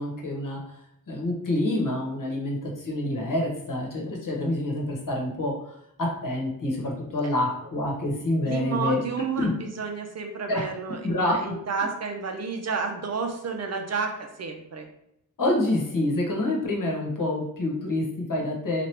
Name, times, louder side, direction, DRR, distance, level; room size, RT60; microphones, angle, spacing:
voice 1, 0.0-9.0 9.4-9.5 10.5-10.7 11.0-11.4 15.4-18.9, left 1 dB, 60° left, -2 dB, 1.1 m, -27 dB
voice 2, 8.4-14.9, right 5 dB, 45° right, 4 dB, 0.6 m, -31 dB
2.9 x 2.4 x 3.3 m, 0.78 s
cardioid pair, 65°, 35 cm